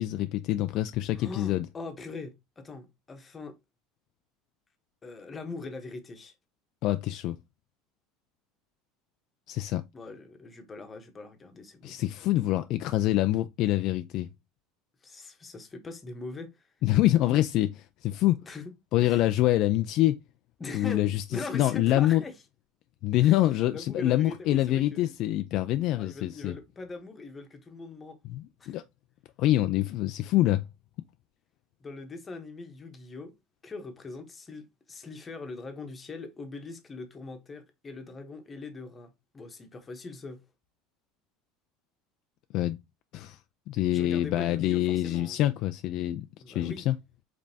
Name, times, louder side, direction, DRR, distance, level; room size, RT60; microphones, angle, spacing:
voice 1, 0.0-1.6 6.8-7.4 9.5-9.8 11.8-14.3 16.8-18.4 18.9-20.2 20.7-21.2 21.5-22.2 23.0-26.6 28.3-28.8 29.4-30.6 42.5-42.8 43.1-43.4 43.7-47.0, left 14 dB, 50° left, 0.3 m, -25 dB
voice 2, 1.1-3.6 5.0-6.3 9.9-12.0 15.0-16.7 18.5-18.7 19.0-19.3 20.6-22.3 23.2-23.4 23.7-25.2 25.9-28.2 28.6-28.8 31.8-33.4 33.6-40.4 43.9-45.4 46.4-46.9, left 3 dB, 20° left, 1.0 m, -41 dB
5.1 x 3.4 x 2.7 m
cardioid pair, 145°, 0 cm